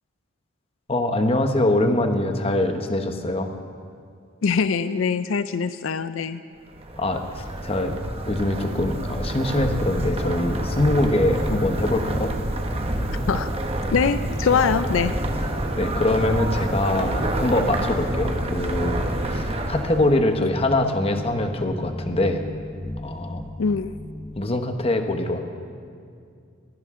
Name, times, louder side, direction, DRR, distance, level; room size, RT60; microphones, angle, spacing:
voice 1, 0.9-3.5 7.0-7.9 8.3-12.3 15.7-22.4 23.0-23.4 24.4-25.4, left 1 dB, 30° left, 6 dB, 1.0 m, -23 dB
voice 2, 4.4-6.4 13.3-13.5 13.9-15.1 20.4-20.5 23.6-23.9, left 6 dB, 75° left, 12 dB, 0.4 m, -23 dB
sound 1, 6.7-20.2, right 1 dB, 30° right, 1.1 m, -27 dB
sound 2, 13.9-24.4, left 1 dB, 15° left, 0.6 m, -37 dB
22.0 x 15.5 x 3.7 m, 2.3 s
head